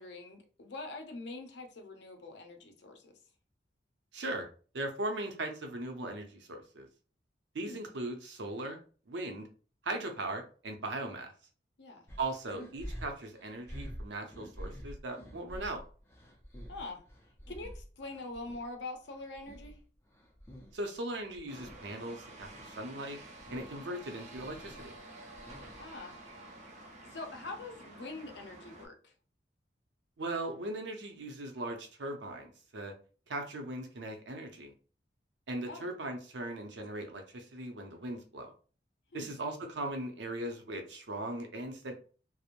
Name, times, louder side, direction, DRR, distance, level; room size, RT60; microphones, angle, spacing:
voice 1, 0.0-3.1 7.6-7.9 11.8-12.1 16.7-17.0 17.5-19.8 25.8-26.2 27.0-29.1 35.7-35.9 39.1-39.3, left 2 dB, 70° left, 4 dB, 0.6 m, -44 dB
voice 2, 4.1-4.5 4.7-6.9 7.5-8.8 9.1-9.5 9.8-11.3 12.2-15.8 20.7-23.2 23.5-24.9 30.2-32.9 33.3-34.7 35.5-38.5 39.1-41.9, right 2 dB, 85° right, 4 dB, 0.6 m, -39 dB
sound 1, 12.1-18.7 19.0-20.8 21.1-21.8 22.2-22.8 23.1-23.8 24.1-26.0, equal, 15° left, 0.5 m, -48 dB
sound 2, 21.5-28.9, right 1 dB, 40° right, 0.6 m, -50 dB
3.0 x 2.0 x 2.5 m, 0.39 s
head